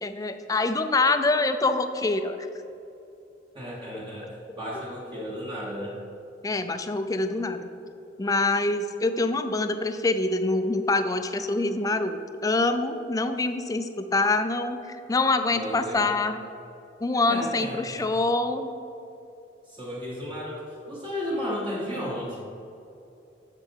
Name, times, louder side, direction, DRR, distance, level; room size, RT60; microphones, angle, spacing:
voice 1, 0.0-2.4 6.4-7.7 8.2-16.4 17.0-18.7, left 3 dB, 20° left, 9 dB, 0.4 m, -25 dB
voice 2, 3.5-6.0 15.5-16.2 17.3-18.1 19.7-22.4, equal, 30° right, -5 dB, 1.1 m, -34 dB
7.3 x 6.8 x 4.5 m, 2.8 s
head